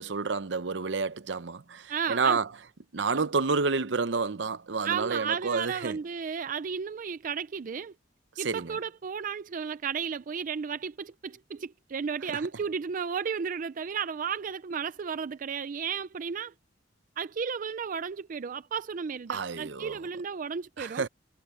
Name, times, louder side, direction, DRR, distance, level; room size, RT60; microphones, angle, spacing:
voice 1, 0.0-2.5 2.9-6.0 8.4-8.8 19.3-20.0 20.8-21.1, right 4 dB, 75° right, 0.8 m, -29 dB
voice 2, 1.9-2.4 3.1-3.2 4.8-7.9 8.4-16.5 17.2-21.1, right 6 dB, 45° right, 0.4 m, -33 dB
head